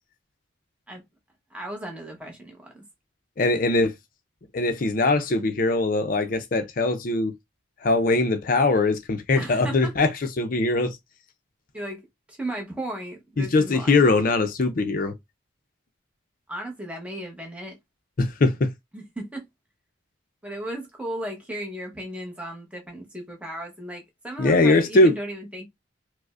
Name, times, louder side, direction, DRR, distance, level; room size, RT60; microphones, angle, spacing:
voice 1, 1.5-2.8 9.4-10.0 11.7-14.0 16.5-17.8 18.9-19.5 20.4-25.7, right 1 dB, 5° right, 0.8 m, -35 dB
voice 2, 3.4-3.9 4.5-7.3 7.8-10.1 10.4-11.0 13.4-15.1 18.2-18.7 24.4-25.1, left 2 dB, 45° left, 0.4 m, -21 dB
4.8 x 2.0 x 2.4 m
head